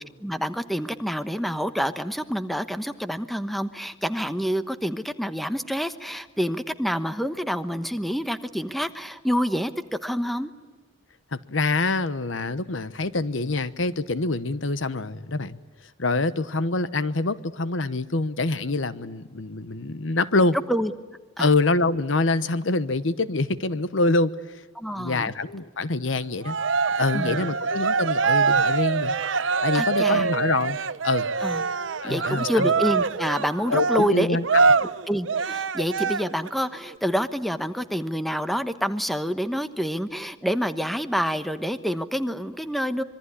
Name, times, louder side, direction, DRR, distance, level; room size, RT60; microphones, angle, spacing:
voice 1, 0.2-9.7 10.0-10.5 20.7-20.9 21.4-21.5 24.8-25.3 27.1-27.5 29.7-30.3 31.4-31.6 32.0-34.4 35.1-43.0, equal, ahead, 1.1 m, -27 dB
voice 2, 11.3-15.6 16.0-20.6 21.4-24.6 24.9-26.6 26.9-29.1 29.6-30.8 31.0-31.3 32.0-32.7 33.7-34.5, left 3 dB, 85° left, 1.1 m, -25 dB
Cheering, 26.4-36.5, right 5 dB, 80° right, 0.8 m, -24 dB
26.0 x 22.5 x 9.9 m
head